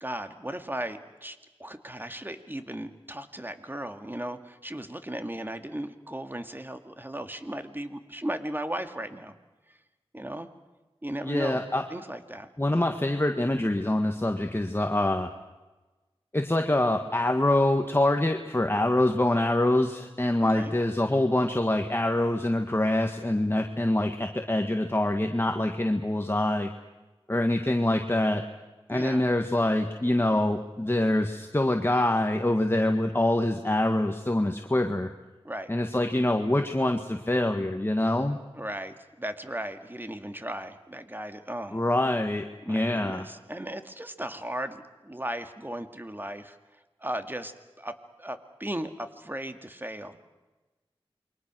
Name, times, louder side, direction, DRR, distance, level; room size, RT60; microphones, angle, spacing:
voice 1, 0.0-9.4 9.7-9.8 10.1-10.5 11.0-12.5 20.5-20.7 28.9-29.2 35.4-35.7 38.6-41.8 42.7-46.6 47.0-50.2, right 1 dB, 20° right, 7 dB, 2.1 m, -36 dB
voice 2, 11.2-11.8 12.6-15.3 16.3-26.7 27.3-28.4 28.9-35.1 35.7-38.4 41.7-43.3, left 1 dB, 25° left, 5 dB, 1.7 m, -25 dB
28.5 x 23.5 x 6.3 m, 1.2 s
wide cardioid pair, 55°, 10 cm